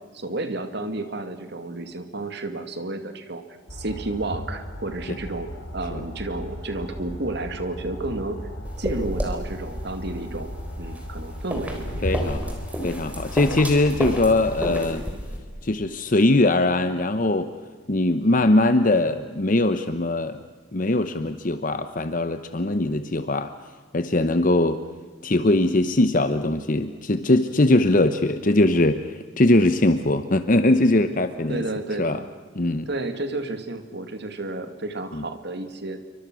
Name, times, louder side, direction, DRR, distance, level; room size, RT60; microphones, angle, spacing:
voice 1, 0.1-3.4 3.7-5.5 5.7-8.4 8.8-10.5 10.8-12.2 31.5-32.3 32.9-36.0, right 2 dB, 55° right, 7 dB, 2.4 m, -31 dB
sound 1, 3.7-14.9, equal, 70° left, 4.6 m, -36 dB
sound 2, 8.7-15.4, equal, 5° right, 4.0 m, -32 dB
voice 2, 12.0-12.6 12.8-15.0 15.6-17.5 17.9-20.4 20.7-23.5 23.9-24.8 25.2-29.0 29.4-31.6 32.0-32.2 32.6-32.9, left 2 dB, 40° left, 10 dB, 0.9 m, -21 dB
28.5 x 24.0 x 6.3 m, 1.5 s
head